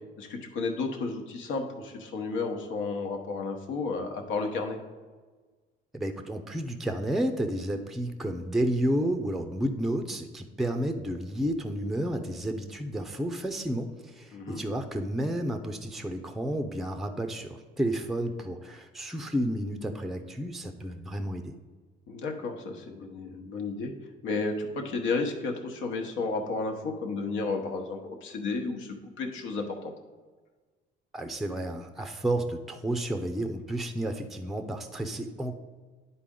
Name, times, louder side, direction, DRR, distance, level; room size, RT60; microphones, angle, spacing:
voice 1, 0.2-4.8 14.3-14.6 22.1-23.9 24.2-29.9, left 3 dB, 75° left, 4 dB, 1.1 m, -32 dB
voice 2, 5.9-21.5 31.1-35.5, right 1 dB, ahead, 7 dB, 0.5 m, -31 dB
10.5 x 4.2 x 3.7 m, 1.4 s
cardioid pair, 115°, 20 cm